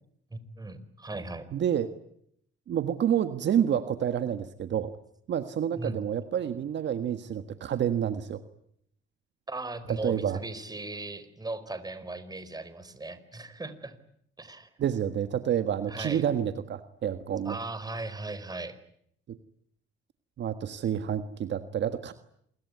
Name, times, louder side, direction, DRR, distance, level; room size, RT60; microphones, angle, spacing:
voice 1, 0.3-1.5 5.8-6.0 9.5-14.0 14.4-14.7 15.9-16.2 17.4-18.8, right 2 dB, 20° right, 12 dB, 4.4 m, -38 dB
voice 2, 1.5-1.9 2.7-4.9 5.3-8.4 9.9-10.4 14.8-17.6 19.3-19.4 20.4-22.1, right 9 dB, 65° right, 10 dB, 1.6 m, -29 dB
27.0 x 23.0 x 9.5 m, 0.69 s
cardioid pair, 90°, 20 cm